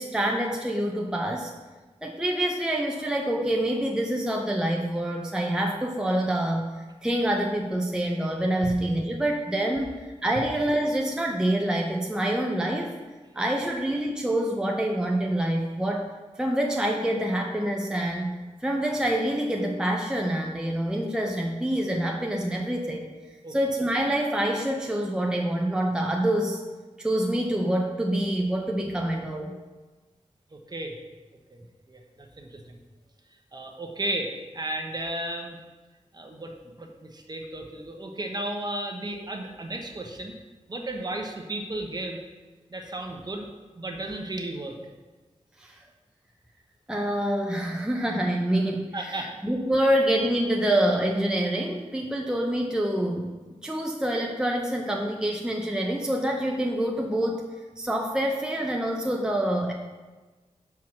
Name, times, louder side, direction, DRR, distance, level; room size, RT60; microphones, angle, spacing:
voice 1, 0.0-1.5 2.0-6.7 7.0-13.0 13.4-16.1 16.4-23.1 23.5-26.6 27.0-29.5 45.6-45.8 46.9-53.3 53.6-57.4 57.8-59.7, right 1 dB, 5° right, 0 dB, 0.6 m, -26 dB
voice 2, 30.5-31.0 31.5-31.6 31.9-32.8 33.5-35.6 36.1-40.3 40.7-42.2 42.7-43.5 43.8-44.8 48.9-49.3, right 1 dB, 35° right, 2 dB, 0.9 m, -34 dB
5.9 x 4.7 x 5.8 m, 1.2 s
wide cardioid pair, 100°, 12 cm